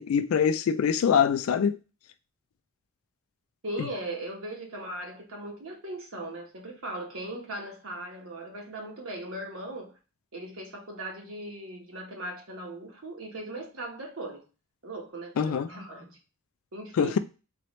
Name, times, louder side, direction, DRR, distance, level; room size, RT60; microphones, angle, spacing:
voice 1, 0.0-1.8 3.8-3.9 15.4-15.7 17.0-17.2, left 7 dB, 75° left, 0.3 m, -24 dB
voice 2, 3.6-9.9 10.3-14.4 14.8-16.2 16.7-17.2, right 1 dB, 70° right, 1.3 m, -38 dB
3.8 x 3.0 x 3.1 m
head